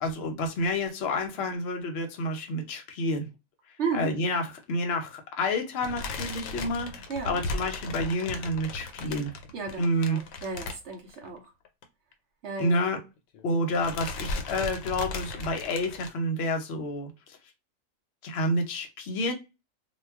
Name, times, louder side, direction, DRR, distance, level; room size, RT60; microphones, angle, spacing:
voice 1, 0.0-3.3 3.9-9.3 9.8-10.2 12.6-13.0 13.4-17.1 18.2-19.3, left 1 dB, 60° left, 0.8 m, -29 dB
voice 2, 3.8-4.1 7.1-7.4 9.5-11.5 12.4-12.8, right 5 dB, 65° right, 0.8 m, -34 dB
sound 1, 5.8-11.4 11.7-11.8 12.1-12.2 13.2-13.5 13.7-16.1, left 3 dB, 85° left, 1.0 m, -36 dB
2.3 x 2.2 x 3.4 m
omnidirectional pair, 1.4 m